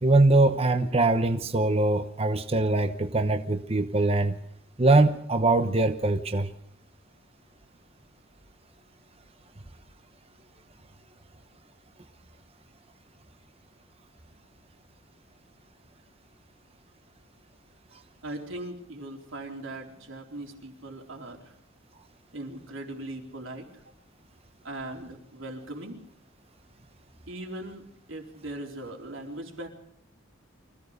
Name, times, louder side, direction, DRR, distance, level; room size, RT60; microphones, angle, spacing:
voice 1, 0.0-4.4 4.8-6.5, right 2 dB, 30° right, 1.0 m, -22 dB
voice 2, 18.2-21.5 22.3-23.8 24.6-26.0 27.3-27.8 28.1-29.7, right 1 dB, 75° right, 4.2 m, -39 dB
25.0 x 16.5 x 6.6 m
head